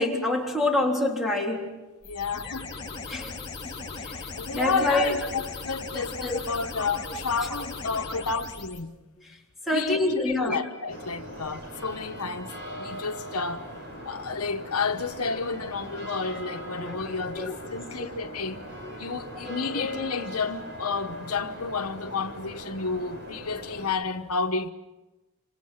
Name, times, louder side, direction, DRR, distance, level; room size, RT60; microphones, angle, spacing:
voice 1, 0.0-1.6 2.4-2.5 3.1-3.3 3.6-3.7 4.5-5.3 6.2-6.4 7.1-7.2 9.7-10.6 16.8-16.9 17.3-17.6 19.4-19.9, left 2 dB, ahead, 3.6 m, -26 dB
voice 2, 2.0-2.7 4.4-8.9 9.7-12.5 12.8-13.7 14.0-18.6 19.0-24.7, left 4 dB, 75° left, 1.2 m, -31 dB
sound 1, 2.0-8.8, left 4 dB, 20° left, 3.8 m, -38 dB
sound 2, 10.9-23.9, equal, 50° right, 6.3 m, -40 dB
27.0 x 27.0 x 5.9 m
head